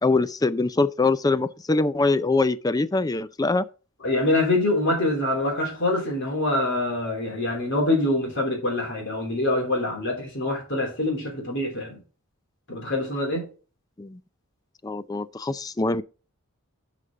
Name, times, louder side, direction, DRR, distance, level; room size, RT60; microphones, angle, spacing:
voice 1, 0.0-3.6 14.0-14.2 14.8-16.0, left 3 dB, 15° left, 0.4 m, -23 dB
voice 2, 4.0-12.0 12.7-13.5, left 2 dB, 55° left, 3.2 m, -25 dB
11.0 x 5.0 x 3.7 m
head